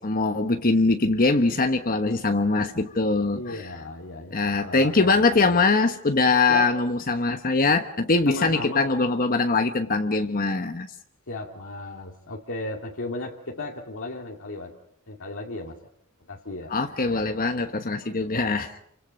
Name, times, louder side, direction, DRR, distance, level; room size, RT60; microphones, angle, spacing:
voice 1, 0.0-3.7 4.3-10.9 16.7-18.8, left 3 dB, 40° left, 6 dB, 1.2 m, -22 dB
voice 2, 3.3-5.6 6.5-6.7 8.3-8.8 11.3-14.8 15.1-15.8 16.3-16.8, left 2 dB, 65° left, 0 dB, 2.2 m, -35 dB
29.0 x 25.5 x 5.3 m, 0.73 s
head